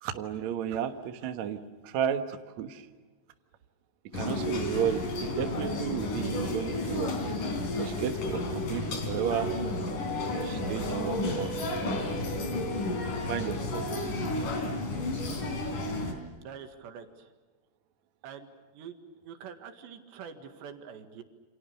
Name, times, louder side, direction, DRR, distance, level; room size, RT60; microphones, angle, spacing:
voice 1, 0.0-2.9 4.1-7.1 7.8-9.5 10.4-11.8 12.1-12.2 13.2-14.1 15.2-15.3, right 9 dB, 65° right, 7 dB, 1.9 m, -33 dB
sound 1, 4.1-16.1, left 2 dB, 50° left, 5.0 m, -32 dB
voice 2, 16.4-17.3 18.2-21.2, right 7 dB, 80° right, 6 dB, 4.1 m, -45 dB
28.5 x 27.5 x 6.8 m, 1.3 s
omnidirectional pair, 5.0 m